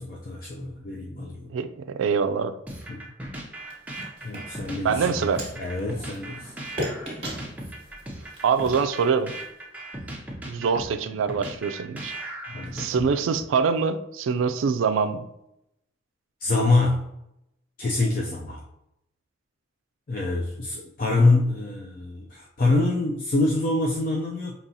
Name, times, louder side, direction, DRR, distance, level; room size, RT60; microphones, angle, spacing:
voice 1, 0.0-1.5 2.9-3.0 4.2-5.3 5.6-6.5 12.5-12.9 16.4-17.1 17.8-18.6 20.1-24.5, left 2 dB, 45° left, -2 dB, 0.4 m, -25 dB
voice 2, 1.5-2.5 4.8-5.4 8.4-9.3 10.5-12.1 12.7-15.2, right 5 dB, 85° right, 10 dB, 0.3 m, -24 dB
sound 1, 2.7-13.5, right 1 dB, 10° right, 0.5 m, -38 dB
sound 2, 3.6-9.6, equal, 30° right, 1.1 m, -38 dB
5.4 x 2.8 x 2.7 m, 0.83 s
head